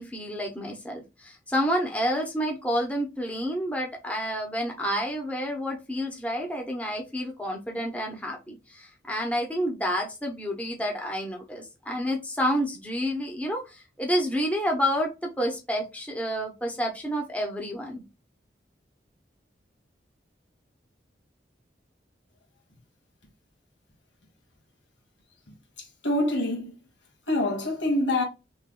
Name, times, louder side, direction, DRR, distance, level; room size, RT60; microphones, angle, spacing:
voice 1, 0.0-18.0, equal, 10° left, 0.7 m, -29 dB
voice 2, 25.8-26.7 27.3-28.2, left 1 dB, 90° left, 1.5 m, -26 dB
3.4 x 3.3 x 2.2 m
head